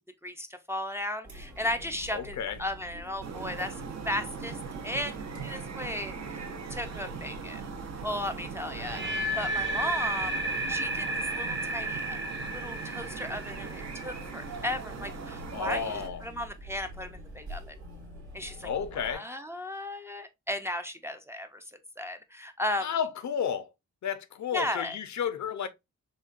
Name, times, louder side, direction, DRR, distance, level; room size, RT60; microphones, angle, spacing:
voice 1, 0.2-3.7 4.1-4.6 4.8-5.2 5.4-7.6 8.0-9.0 9.4-12.2 12.5-17.7 18.3-21.6 22.0-22.9 24.5-25.0, left 1 dB, 10° right, 0.4 m, -35 dB
Chatter, 1.2-19.1, equal, 80° right, 1.9 m, -46 dB
voice 2, 2.1-2.6 15.5-16.2 18.6-19.2 22.8-23.7 24.0-25.7, left 7 dB, 70° left, 0.6 m, -32 dB
sound 1, 3.2-16.1, right 6 dB, 60° right, 0.7 m, -40 dB
sound 2, 8.7-14.8, right 1 dB, 40° right, 1.2 m, -33 dB
6.2 x 2.2 x 2.4 m
wide cardioid pair, 125°, 30 cm